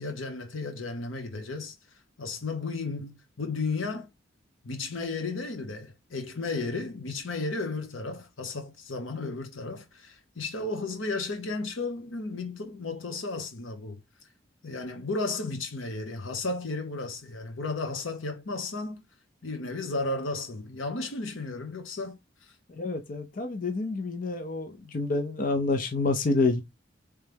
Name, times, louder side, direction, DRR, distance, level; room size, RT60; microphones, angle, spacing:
voice 1, 0.0-1.7 2.2-4.1 4.6-14.0 14.6-19.0 19.4-22.5, left 3 dB, 90° left, 1.1 m, -34 dB
voice 2, 22.8-26.6, left 3 dB, 45° left, 0.6 m, -28 dB
3.3 x 3.2 x 3.4 m
head